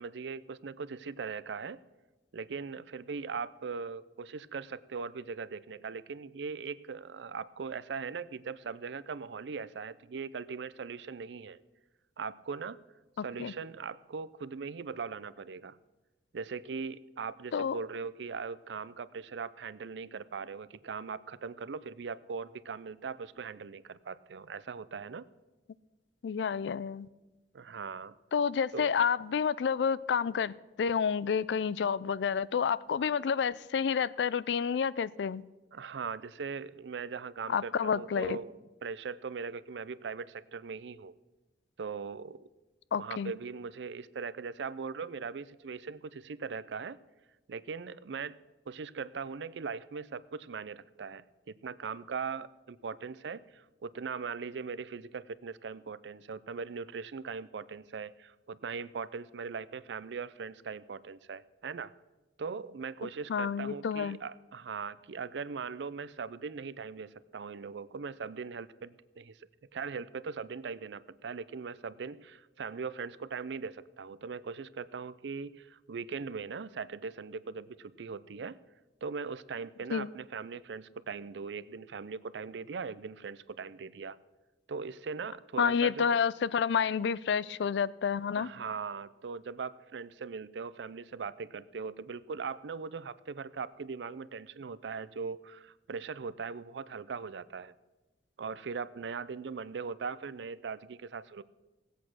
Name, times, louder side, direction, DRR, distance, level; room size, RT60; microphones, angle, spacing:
voice 1, 0.0-1.8 2.3-11.6 12.2-12.8 13.2-15.8 16.3-25.3 27.5-28.2 28.7-28.9 35.7-41.2 41.8-42.4 43.0-47.0 47.5-48.4 48.7-61.9 62.4-69.4 69.7-78.6 79.0-84.2 84.7-86.2 88.4-97.7 98.4-101.4, right 5 dB, 75° right, 18 dB, 0.5 m, -40 dB
voice 2, 13.2-13.5 17.5-17.8 26.2-27.1 28.3-35.4 37.5-38.4 42.9-43.3 63.3-64.2 79.9-80.1 85.6-88.5, left 7 dB, 75° left, 20 dB, 0.4 m, -29 dB
17.5 x 8.3 x 6.1 m, 1.1 s
head